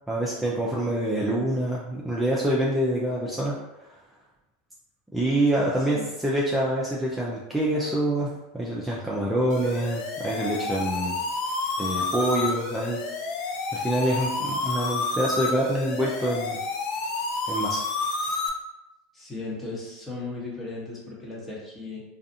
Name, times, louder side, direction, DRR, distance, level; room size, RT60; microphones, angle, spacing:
voice 1, 0.1-3.6 5.1-11.1 11.8-13.0 13.7-16.6 17.5-17.8, right 1 dB, 5° right, -6 dB, 0.5 m, -26 dB
voice 2, 5.8-6.1 19.1-22.0, left 3 dB, 20° left, -4 dB, 1.0 m, -36 dB
sound 1, 9.5-18.5, left 3 dB, 55° left, 0.4 m, -30 dB
2.4 x 2.4 x 2.6 m, 1.0 s
hypercardioid pair, 90°, 0 cm